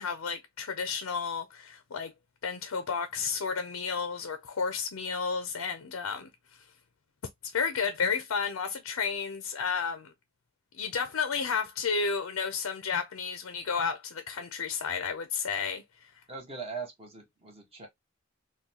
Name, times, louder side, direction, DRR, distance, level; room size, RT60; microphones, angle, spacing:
voice 1, 0.0-2.1 2.4-6.3 7.4-10.1 10.7-16.1, left 5 dB, 85° left, 0.5 m, -32 dB
voice 2, 16.3-17.9, right 4 dB, 30° right, 1.2 m, -40 dB
3.7 x 2.3 x 2.8 m
head